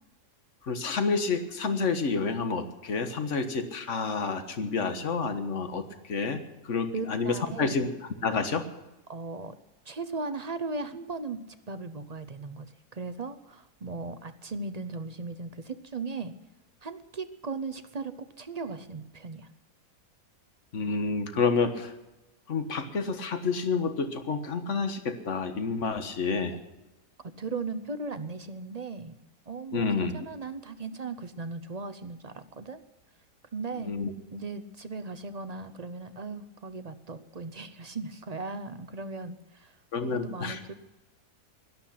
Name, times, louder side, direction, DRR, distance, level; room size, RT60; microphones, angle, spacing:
voice 1, 0.6-7.9 8.2-8.6 20.7-21.9 22.5-26.6 29.7-30.1 33.8-34.1 39.9-40.6, left 4 dB, 50° left, 8 dB, 1.7 m, -29 dB
voice 2, 6.9-7.8 9.1-9.6 9.9-16.3 16.8-19.5 27.2-29.1 29.5-32.8 33.5-33.9 34.3-40.7, right 3 dB, 35° right, 11 dB, 0.6 m, -37 dB
17.0 x 12.5 x 5.8 m, 0.99 s
omnidirectional pair, 1.7 m